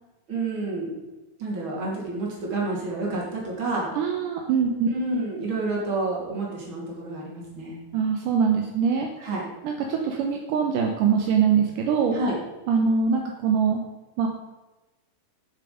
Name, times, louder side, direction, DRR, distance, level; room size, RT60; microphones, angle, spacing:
voice 1, 0.3-0.9 1.4-4.0 4.9-7.8 9.2-9.5 12.1-12.4, right 2 dB, 40° right, -3 dB, 3.5 m, -29 dB
voice 2, 4.0-4.9 7.9-9.1 9.6-12.2 12.7-13.8 14.2-14.3, right 6 dB, 75° right, 2 dB, 2.5 m, -23 dB
13.0 x 6.9 x 5.1 m, 1.1 s
omnidirectional pair, 3.8 m